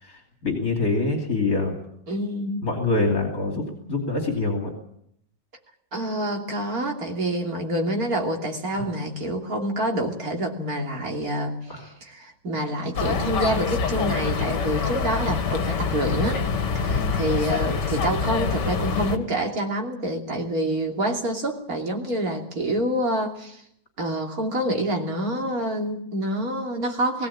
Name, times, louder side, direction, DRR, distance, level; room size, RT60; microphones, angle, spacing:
voice 1, 0.0-1.7 2.6-4.7 8.8-8.9 11.7-11.9 16.9-17.2, left 3 dB, 55° left, 2 dB, 3.4 m, -25 dB
voice 2, 2.1-2.7 5.9-16.4 16.8-23.6 24.0-27.3, right 1 dB, 55° right, 1 dB, 3.4 m, -27 dB
sound 1, 12.9-19.2, left 5 dB, 75° left, 2.2 m, -25 dB
21.0 x 16.5 x 8.7 m, 0.72 s
omnidirectional pair, 1.9 m